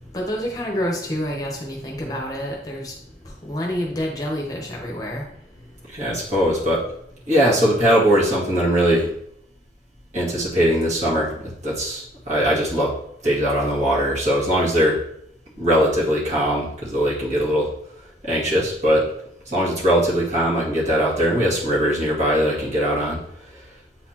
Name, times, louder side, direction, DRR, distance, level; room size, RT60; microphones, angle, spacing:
voice 1, 0.1-2.9 3.4-5.2, equal, 20° left, -1 dB, 0.9 m, -28 dB
voice 2, 5.9-6.8 7.3-9.1 10.1-11.3 11.6-12.9 13.2-15.0 15.6-17.7 18.2-19.2 19.5-23.6, equal, 40° right, -6 dB, 2.0 m, -20 dB
8.2 x 4.1 x 2.9 m, 0.72 s
head